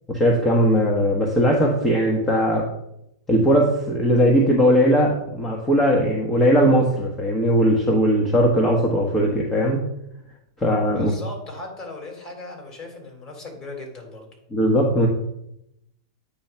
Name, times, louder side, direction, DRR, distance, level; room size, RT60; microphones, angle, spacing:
voice 1, 0.1-2.7 3.3-9.8 10.6-11.1 14.5-15.1, equal, 15° left, -1 dB, 1.2 m, -19 dB
voice 2, 10.8-14.3, left 2 dB, 30° left, 1 dB, 2.7 m, -37 dB
8.7 x 3.2 x 5.7 m, 0.80 s
hypercardioid pair, 120°, 2 cm